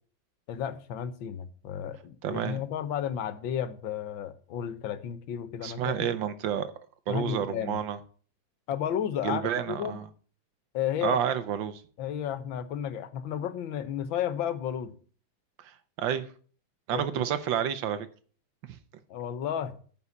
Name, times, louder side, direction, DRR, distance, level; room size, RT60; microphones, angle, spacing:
voice 1, 0.5-6.1 7.1-7.8 8.7-10.0 10.7-11.2 12.0-14.9 16.9-17.3 19.1-19.8, left 9 dB, 80° left, 1.7 m, -33 dB
voice 2, 2.2-2.6 5.6-6.7 7.1-8.0 9.2-10.1 11.0-11.8 15.6-16.3 16.9-18.1 18.7-18.8, right 9 dB, 75° right, 1.6 m, -30 dB
9.5 x 5.5 x 7.1 m
omnidirectional pair, 2.1 m